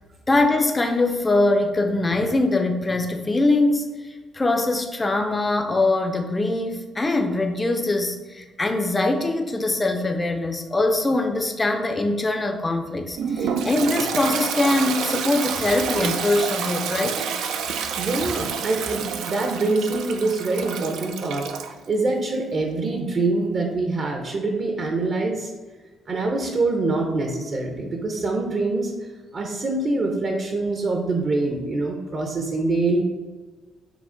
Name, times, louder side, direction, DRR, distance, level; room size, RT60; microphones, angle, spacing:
voice 1, 0.3-4.0 4.3-17.3, left 2 dB, 20° left, 4 dB, 0.4 m, -22 dB
Toilet flush, 13.2-21.7, right 6 dB, 85° right, 0.3 m, -28 dB
voice 2, 18.0-21.5 21.9-25.5 26.1-28.9 29.3-33.0, right 3 dB, 50° right, 2 dB, 0.7 m, -24 dB
5.9 x 2.1 x 3.8 m, 1.3 s
cardioid pair, 90°, 0 cm